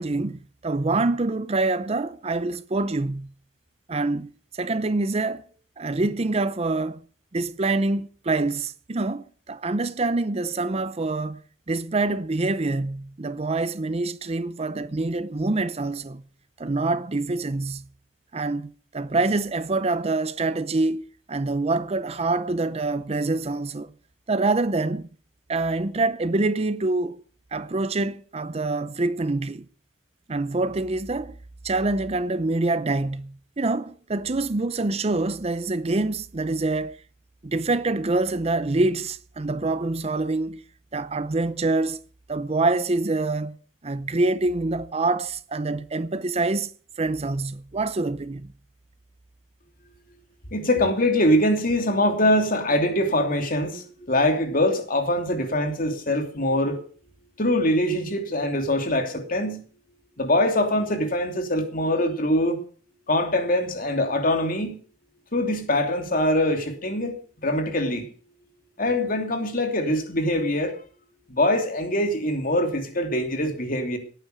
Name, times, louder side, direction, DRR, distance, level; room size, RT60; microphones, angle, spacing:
voice 1, 0.0-3.3 3.9-5.4 5.8-7.0 7.3-11.4 11.7-16.2 16.6-17.8 18.3-21.0 21.3-23.9 24.3-25.1 25.5-27.2 27.5-29.6 30.3-31.4 31.6-37.0 37.4-40.6 40.9-42.0 42.3-43.6 43.8-46.7 47.0-48.5, right 2 dB, 35° right, 0.6 m, -25 dB
voice 2, 50.5-56.8 57.4-59.6 60.2-62.6 63.1-64.8 65.3-67.2 67.4-68.1 68.8-70.8 71.3-74.0, left 1 dB, 45° left, 2.9 m, -23 dB
18.5 x 9.2 x 6.5 m
head